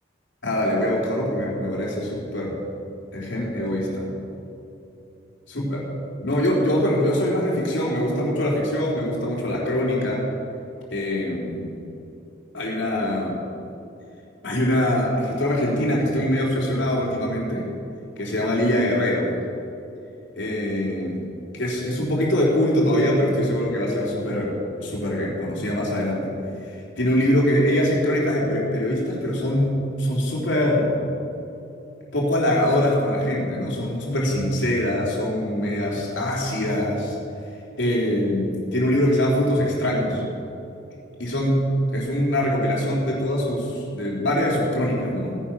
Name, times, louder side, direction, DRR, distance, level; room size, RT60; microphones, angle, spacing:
voice 1, 0.4-2.6 3.1-4.1 5.5-5.8 6.2-10.3 10.9-11.7 12.5-13.4 14.4-17.7 18.2-19.3 20.3-21.2 21.5-24.5 24.8-26.3 26.7-31.0 32.1-37.2 37.8-40.2 41.2-41.7 41.9-45.4, left 1 dB, 80° left, -4 dB, 3.7 m, -23 dB
17.0 x 10.5 x 6.0 m, 2.8 s
head